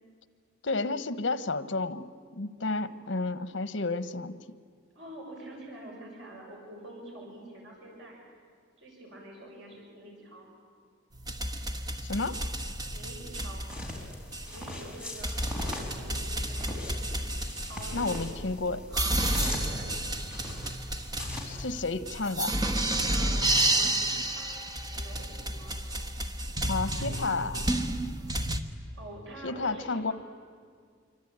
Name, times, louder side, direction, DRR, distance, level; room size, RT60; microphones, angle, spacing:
voice 1, 0.6-4.4 12.0-12.4 17.9-18.8 21.4-22.5 26.7-27.6 29.4-30.1, left 3 dB, 70° left, 13 dB, 1.1 m, -31 dB
voice 2, 5.0-8.2 8.8-10.5 12.9-13.7 14.5-17.2 17.6-18.2 18.9-20.0 23.1-25.8 26.9-27.6 28.2-28.4 29.0-30.1, right 1 dB, 75° right, -2 dB, 6.9 m, -47 dB
sound 1, 11.1-28.6, right 1 dB, 20° right, 1.3 m, -31 dB
sound 2, 13.7-21.8, left 1 dB, 5° right, 4.4 m, -40 dB
27.0 x 24.5 x 8.8 m, 2.1 s
head